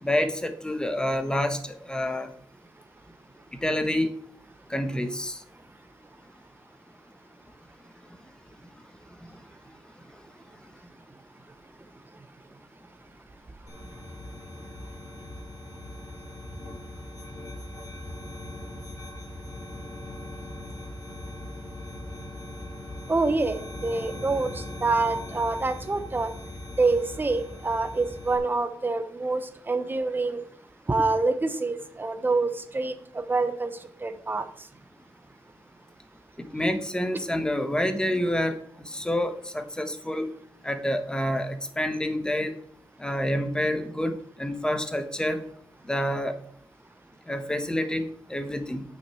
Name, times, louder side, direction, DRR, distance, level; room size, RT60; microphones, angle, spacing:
voice 1, 0.0-2.3 3.6-4.1 4.7-5.4 36.5-38.6 38.8-40.3 40.6-42.5 43.0-45.4 45.9-46.4 47.3-48.8, left 1 dB, 10° left, 8 dB, 1.1 m, -28 dB
sound 1, 13.7-28.4, left 1 dB, 40° left, 2.7 m, -40 dB
voice 2, 23.1-26.3 26.8-30.4 30.9-34.5, right 3 dB, 20° right, 9 dB, 1.0 m, -26 dB
9.4 x 6.0 x 4.8 m, 0.64 s
cardioid pair, 100°, 9 cm